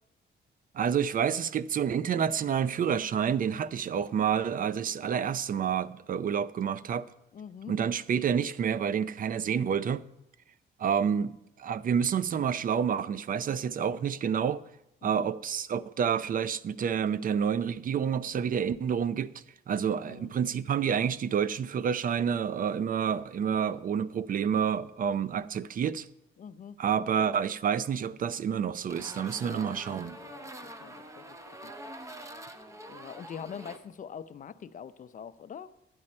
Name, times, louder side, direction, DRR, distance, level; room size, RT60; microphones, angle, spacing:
voice 1, 0.7-7.1 7.7-10.1 10.8-14.6 15.0-19.3 19.7-26.1 26.8-30.2, right 7 dB, 45° right, 0.5 m, -29 dB
voice 2, 7.3-7.7 12.2-12.3 15.0-15.2 20.0-20.3 26.4-27.3 29.3-29.8 30.2-31.7 32.9-35.7, left 7 dB, 40° left, 0.5 m, -44 dB
sound 1, 28.9-33.8, right 1 dB, 15° right, 0.8 m, -45 dB
12.0 x 9.7 x 4.3 m
cardioid pair, 90°, 20 cm